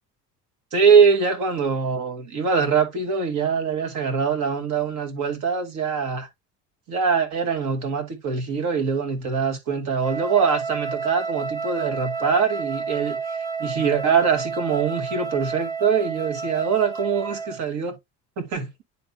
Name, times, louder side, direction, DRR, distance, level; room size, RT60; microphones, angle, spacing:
voice 1, 0.7-6.3 6.9-13.2 13.6-17.9 18.4-18.8, right 6 dB, 65° right, 2.3 m, -23 dB
Wind instrument woodwind instrument, 10.0-17.6, right 5 dB, 10° right, 1.3 m, -30 dB
10.0 x 4.0 x 2.7 m
cardioid pair, 150°, 31 cm